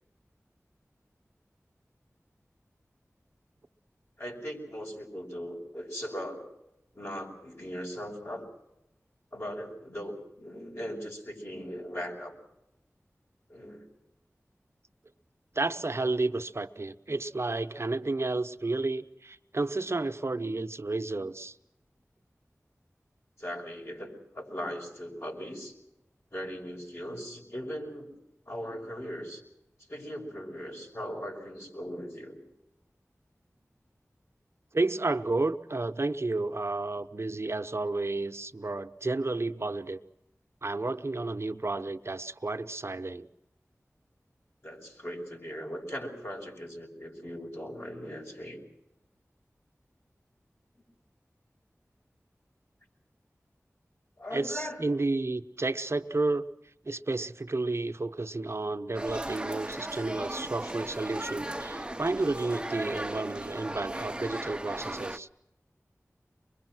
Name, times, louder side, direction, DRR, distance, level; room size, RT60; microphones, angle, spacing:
voice 1, 4.2-6.5 6.9-8.5 9.3-12.3 13.5-13.8 23.4-25.7 26.3-28.1 28.5-29.4 29.9-32.4 44.6-48.6 54.2-54.8, equal, 55° left, 0 dB, 5.9 m, -39 dB
voice 2, 15.5-21.6 34.7-40.0 40.6-43.3 54.3-56.5 56.9-65.3, right 2 dB, 55° right, 9 dB, 0.9 m, -31 dB
sound 1, 58.9-65.2, right 1 dB, 15° right, 0.8 m, -37 dB
24.5 x 22.0 x 6.2 m, 0.87 s
wide cardioid pair, 60°, 5 cm